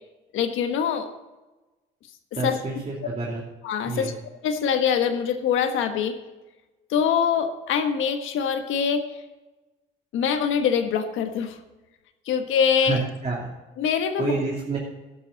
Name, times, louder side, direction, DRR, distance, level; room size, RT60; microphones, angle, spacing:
voice 1, 0.3-1.1 2.4-2.6 3.6-4.1 4.4-6.2 6.9-9.0 10.1-11.6 12.2-13.0 13.8-14.4, left 7 dB, 85° left, 7 dB, 1.4 m, -24 dB
voice 2, 2.3-3.4 3.9-4.1 12.9-13.5 14.2-14.8, right 3 dB, 30° right, -4 dB, 3.0 m, -28 dB
11.5 x 11.0 x 4.0 m, 1.1 s
cardioid pair, 90°, 20 cm